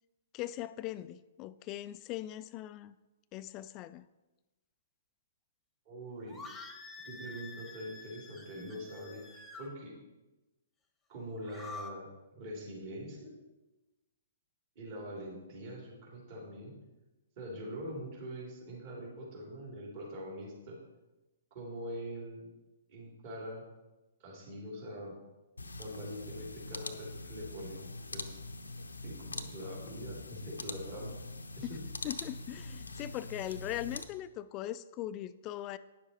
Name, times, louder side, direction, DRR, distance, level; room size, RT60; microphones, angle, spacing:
voice 1, 0.3-3.0 3.3-4.1 31.6-31.8 32.0-35.8, left 13 dB, 30° left, 0.3 m, -40 dB
voice 2, 5.8-6.4 7.0-9.9 11.1-13.3 14.7-16.7 17.4-20.8 21.5-22.5 22.9-23.6 24.2-25.1 25.8-27.8 28.1-28.4 29.0-31.1 31.6-31.8, equal, 45° right, 3.2 m, -43 dB
sound 1, 6.3-9.7 11.3-11.9, left 3 dB, 10° left, 0.9 m, -47 dB
sound 2, 25.6-34.0, left 2 dB, 85° left, 0.7 m, -43 dB
9.9 x 6.8 x 4.3 m
figure-of-eight pair, 125°, 0 cm